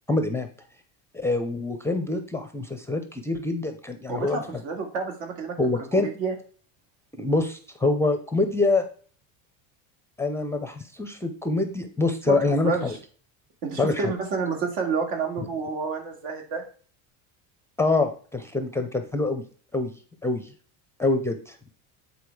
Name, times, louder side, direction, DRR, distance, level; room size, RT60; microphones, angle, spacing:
voice 1, 0.1-0.5 1.1-4.6 5.6-6.1 7.2-8.8 10.2-13.0 13.8-14.1 17.8-19.5 19.7-19.9 20.2-20.5 21.0-21.6, left 2 dB, 5° left, 6 dB, 0.4 m, -25 dB
voice 2, 4.1-5.6 6.0-6.3 12.3-13.0 13.6-16.6, right 5 dB, 80° right, 3 dB, 2.6 m, -29 dB
8.8 x 4.1 x 4.7 m, 0.41 s
cardioid pair, 155°, 40 cm